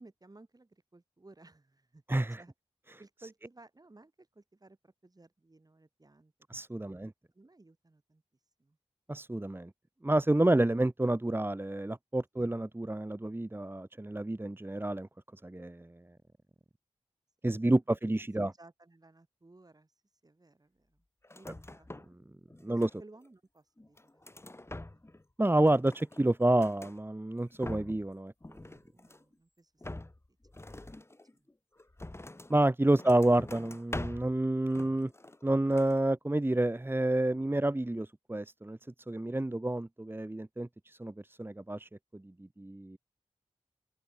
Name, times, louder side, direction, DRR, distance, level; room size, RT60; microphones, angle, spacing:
voice 1, 0.0-2.0 2.4-2.5 3.0-6.3 6.9-8.2 8.6-8.8 12.3-12.5 18.6-19.9 20.2-21.0 21.3-21.9 22.7-25.1 28.9-30.1 30.8-30.9 31.3-31.5 32.9-33.7, right 2 dB, 35° right, 7.0 m, -58 dB
voice 2, 2.1-2.4 6.5-7.1 9.1-9.7 10.0-16.0 17.4-18.5 22.6-22.9 25.4-28.3 32.5-35.1 35.4-38.8 39.1-41.1 41.4-43.0, right 1 dB, 20° right, 1.5 m, -29 dB
sound 1, 21.2-22.2 22.5-23.3 23.8-25.2 25.5-27.0 27.4-28.1 28.4-29.3 29.8-32.6 33.0-34.4 34.7-35.5 35.7-36.0, left 2 dB, 25° left, 2.4 m, -45 dB
open air
wide cardioid pair, 75°, 11 cm